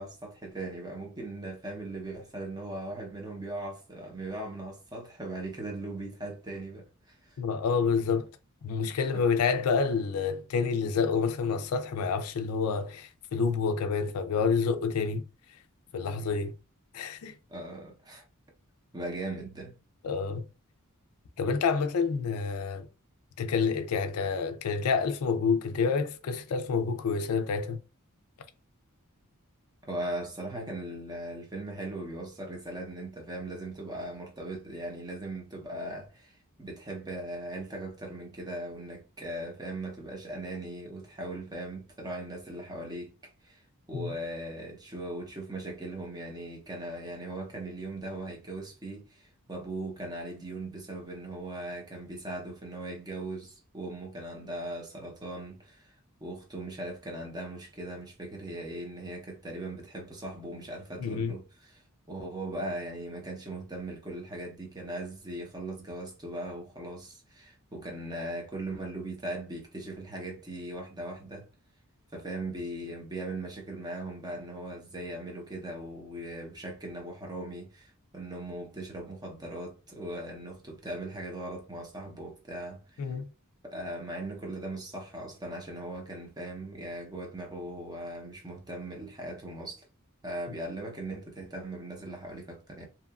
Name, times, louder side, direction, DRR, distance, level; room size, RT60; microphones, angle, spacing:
voice 1, 0.0-7.4 9.1-9.2 17.5-18.2 18.9-19.7 29.8-43.6 43.9-55.9 56.2-71.5 72.1-83.0 83.6-89.8 90.2-92.9, right 1 dB, 20° right, 0.7 m, -39 dB
voice 2, 7.4-8.3 8.6-15.2 15.5-15.6 15.9-16.5 16.9-17.4 20.0-20.5 21.4-22.9 23.4-27.8 43.9-44.2 61.0-61.3 83.0-83.3, left 5 dB, 75° left, 0.4 m, -28 dB
2.8 x 2.3 x 2.3 m
head